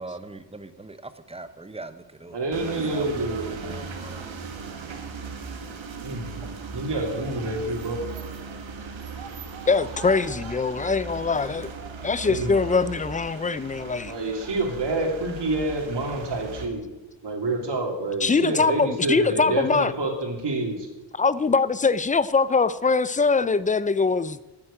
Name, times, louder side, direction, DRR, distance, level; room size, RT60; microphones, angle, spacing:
voice 1, 0.0-2.4 2.7-3.1 3.6-4.3, right 2 dB, 15° right, 11 dB, 0.7 m, -41 dB
voice 2, 2.3-3.6 6.0-8.0 12.2-12.5 14.1-16.8 17.2-20.9, right 2 dB, 65° right, 2 dB, 2.9 m, -28 dB
sound 1, 2.5-16.7, right 5 dB, 85° right, 1.6 m, -38 dB
voice 3, 9.7-11.7 12.0-14.1 18.2-19.9 21.1-24.4, left 4 dB, 20° left, 17 dB, 0.4 m, -22 dB
10.0 x 9.2 x 8.6 m, 1.1 s
wide cardioid pair, 140°, 46 cm